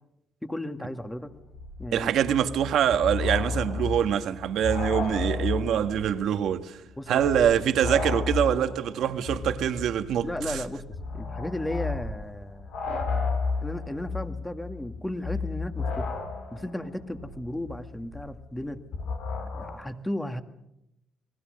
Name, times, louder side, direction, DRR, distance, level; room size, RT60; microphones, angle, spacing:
voice 1, 0.4-1.3 1.8-2.1 7.0-7.2 10.2-10.8 11.1-12.7 13.6-16.1 16.5-18.8 19.4-20.4, left 1 dB, 10° left, 2.0 m, -34 dB
sound 1, 1.0-1.1 1.3-6.2 6.4-6.5 7.1-19.7, left 4 dB, 85° left, 5.2 m, -33 dB
voice 2, 1.9-6.8 7.1-10.6, right 9 dB, 75° right, 1.6 m, -24 dB
29.5 x 20.5 x 6.6 m
cardioid pair, 90°, 0 cm